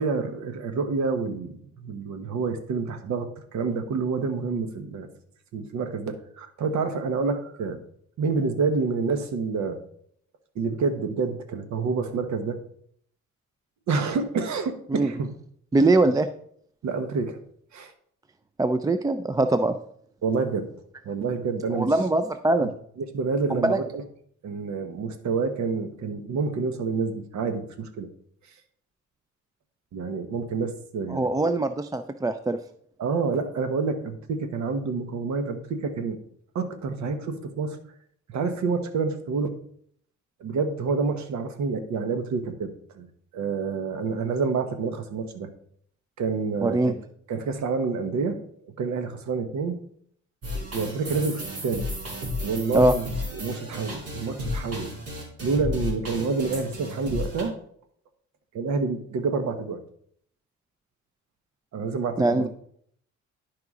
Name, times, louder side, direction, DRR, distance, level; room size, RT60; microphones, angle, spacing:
voice 1, 0.0-5.1 5.5-7.8 8.2-9.8 10.5-12.6 13.9-15.3 16.8-17.4 17.7-17.9 20.2-20.7 21.0-21.9 22.6-22.7 23.0-24.0 24.4-28.1 29.9-31.5 33.0-36.2 36.5-37.8 38.3-39.5 40.4-43.1 43.3-45.5 46.2-47.0 47.3-48.4 48.8-49.8 50.7-51.9 52.4-53.1 53.3-54.9 55.4-57.5 58.5-59.8 61.7-62.5, right 4 dB, 70° right, 8 dB, 1.1 m, -28 dB
voice 2, 15.7-16.3 18.6-19.8 21.7-22.7 23.5-23.8 31.1-32.6 46.6-46.9 52.7-52.9 62.2-62.5, right 2 dB, 15° right, 10 dB, 0.3 m, -22 dB
sound 1, 50.4-57.4, left 1 dB, 50° right, 3.1 m, -33 dB
11.0 x 4.8 x 3.6 m, 0.64 s
cardioid pair, 90°, 30 cm